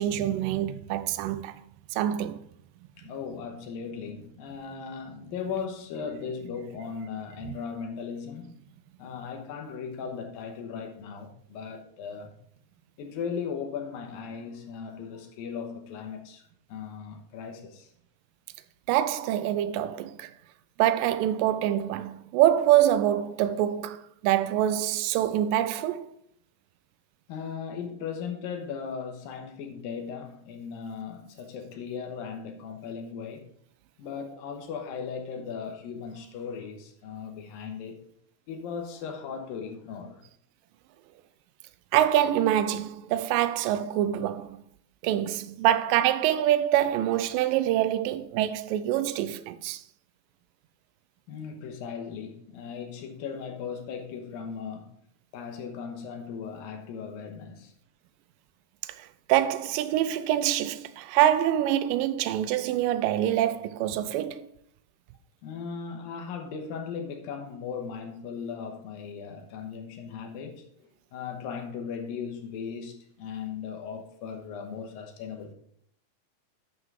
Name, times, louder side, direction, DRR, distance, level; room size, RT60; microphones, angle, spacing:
voice 1, 0.0-1.6 1.9-2.4 18.9-20.3 20.8-26.1 41.9-44.6 45.0-49.8 59.0-64.5, right 12 dB, 80° right, 2.1 m, -25 dB
voice 2, 3.0-8.6 9.0-12.4 13.0-16.4 16.7-17.9 27.3-33.5 34.0-38.0 38.5-40.2 51.3-55.0 55.3-57.7 65.4-75.5, left 6 dB, 75° left, 2.9 m, -37 dB
9.6 x 5.6 x 4.7 m
omnidirectional pair, 4.2 m